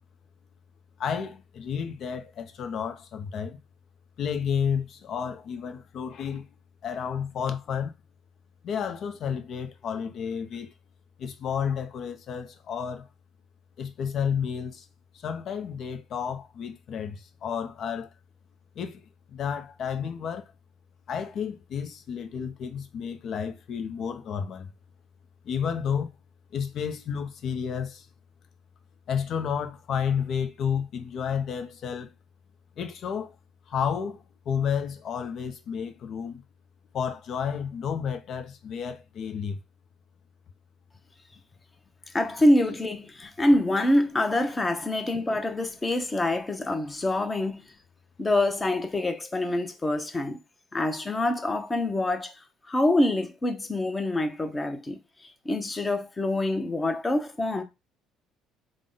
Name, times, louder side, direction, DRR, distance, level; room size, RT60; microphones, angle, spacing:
voice 1, 1.0-3.6 4.2-6.5 6.8-7.9 8.6-10.7 11.2-13.1 13.8-14.9 15.1-18.1 18.8-20.5 21.1-24.7 25.4-26.1 26.5-28.1 29.1-32.1 32.8-33.3 33.7-36.4 36.9-39.6, left 7 dB, 60° left, 0.6 m, -31 dB
voice 2, 42.1-47.7 48.2-50.4 50.7-52.3 52.7-57.6, left 1 dB, 25° left, 0.8 m, -26 dB
3.6 x 2.1 x 3.7 m
supercardioid pair, 70°, 0 cm